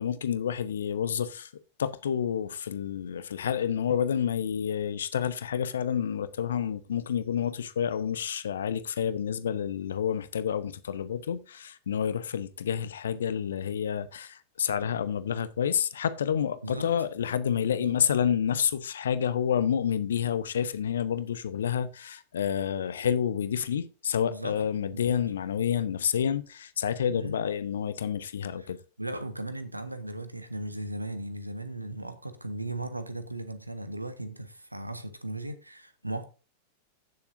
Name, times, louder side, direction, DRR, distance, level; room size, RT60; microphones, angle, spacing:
voice 1, 0.0-1.5 1.8-28.8, left 8 dB, 65° left, 0.8 m, -29 dB
voice 2, 29.0-36.3, right 1 dB, 85° right, 1.2 m, -37 dB
16.0 x 7.0 x 2.6 m
figure-of-eight pair, 90°, 0 cm